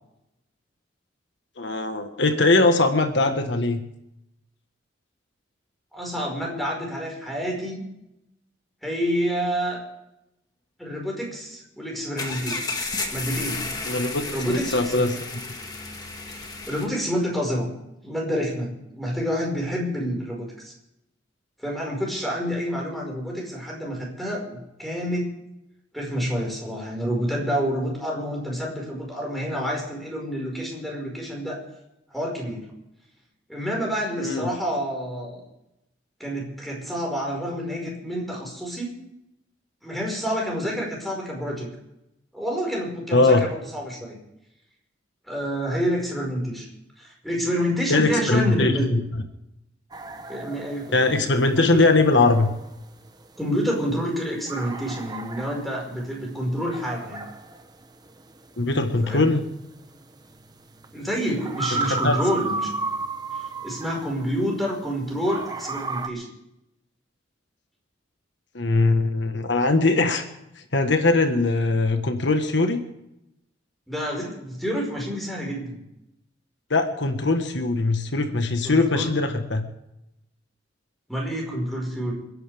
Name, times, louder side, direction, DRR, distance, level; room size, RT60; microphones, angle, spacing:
voice 1, 1.6-3.8 13.9-15.2 34.2-34.5 43.1-43.5 47.9-49.0 50.9-52.5 58.6-59.4 61.8-62.2 68.5-70.3 70.7-72.8 76.7-79.7, left 3 dB, 65° left, 6 dB, 1.5 m, -21 dB
voice 2, 5.9-7.8 8.8-9.8 10.8-12.6 13.1-13.7 14.3-15.2 16.4-17.7 18.0-20.7 21.6-25.4 25.9-31.6 32.1-32.7 33.5-35.4 36.2-38.9 39.8-41.7 42.3-44.2 45.3-46.7 47.0-48.9 50.3-51.2 51.6-51.8 53.4-57.3 59.0-59.3 60.9-62.9 63.3-66.2 73.9-75.8 78.6-79.1 81.1-82.1, equal, ahead, -2 dB, 5.3 m, -28 dB
sound 1, 12.2-16.9, left 3 dB, 20° left, 2.0 m, -32 dB
sound 2, 49.9-64.9 65.2-66.1, right 4 dB, 20° right, 1.0 m, -34 dB
29.0 x 11.0 x 3.6 m, 0.86 s
head